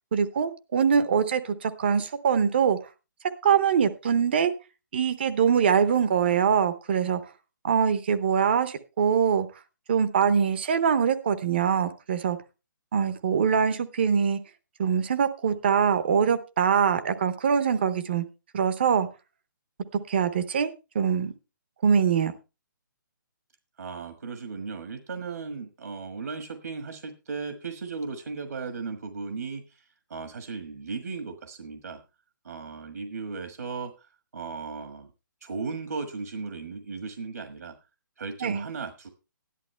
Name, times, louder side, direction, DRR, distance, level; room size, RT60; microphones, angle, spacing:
voice 1, 0.1-2.8 3.4-4.5 4.9-7.2 7.6-9.5 9.9-12.4 12.9-14.4 14.8-18.2 18.5-19.1 20.1-21.3 21.8-22.3 38.4-38.6, right 7 dB, 30° right, 12 dB, 0.8 m, -23 dB
voice 2, 23.8-32.0 32.4-35.1 35.4-37.7 38.2-39.1, right 4 dB, 65° right, 7 dB, 1.5 m, -36 dB
13.0 x 11.0 x 3.2 m, 0.29 s
hypercardioid pair, 175°, 11 cm